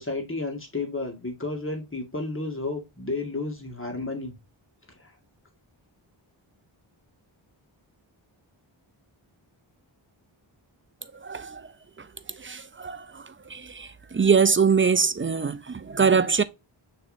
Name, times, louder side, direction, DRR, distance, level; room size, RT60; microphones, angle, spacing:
voice 1, 0.0-4.3 4.9-5.1, left 3 dB, 25° left, 1.8 m, -32 dB
voice 2, 11.1-11.7 12.0-16.4, right 6 dB, 25° right, 0.4 m, -24 dB
6.5 x 3.2 x 2.6 m
wide cardioid pair, 60°, 48 cm